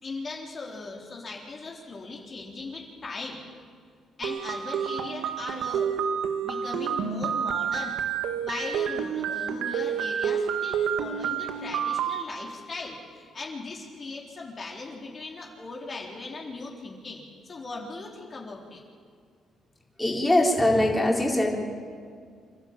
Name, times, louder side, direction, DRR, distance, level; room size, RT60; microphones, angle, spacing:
voice 1, 0.0-3.4 4.2-5.9 6.4-8.0 8.4-18.8, left 3 dB, 40° left, -2 dB, 3.8 m, -38 dB
sound 1, 4.2-12.2, right 8 dB, 90° right, 1.3 m, -29 dB
voice 2, 20.0-21.6, left 1 dB, 10° left, -2 dB, 4.2 m, -22 dB
28.0 x 12.5 x 8.9 m, 2.1 s
cardioid pair, 90°, 0 cm